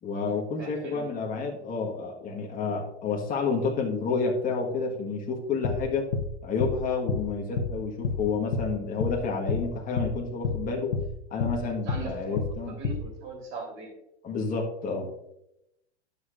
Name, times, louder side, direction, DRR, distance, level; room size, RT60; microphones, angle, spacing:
voice 1, 0.0-6.1 6.4-10.9 11.3-12.7 14.2-15.1, left 4 dB, 25° left, 0 dB, 1.5 m, -30 dB
voice 2, 0.6-1.2 11.9-13.9, right 3 dB, 40° right, 0 dB, 3.5 m, -39 dB
sound 1, 5.6-5.8 6.1-6.3 6.6-6.8 7.1-7.2 7.6-7.7 8.0-8.2 8.5-8.7 9.0-9.2 9.5-9.6 10.0-10.1 10.4-10.6 10.9-11.1 11.4-11.6 11.9-12.0 12.4-12.5 12.8-13.0, left 5 dB, 65° left, 1.1 m, -28 dB
12.0 x 6.9 x 2.5 m, 0.82 s
hypercardioid pair, 115°, 33 cm